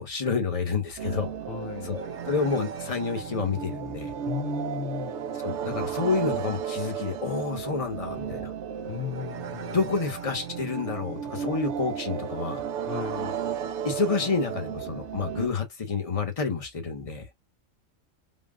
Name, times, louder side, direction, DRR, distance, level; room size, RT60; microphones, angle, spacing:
voice 1, 0.0-1.3 1.8-4.1 5.3-8.5 9.7-12.6 13.8-17.3, left 4 dB, 30° left, 0.9 m, -29 dB
sound 1, 1.0-15.5, right 8 dB, 65° right, 0.8 m, -34 dB
voice 2, 1.5-1.9 4.3-5.2 8.9-9.8 12.9-13.3, left 9 dB, 65° left, 0.6 m, -35 dB
3.6 x 2.3 x 3.6 m
omnidirectional pair, 1.4 m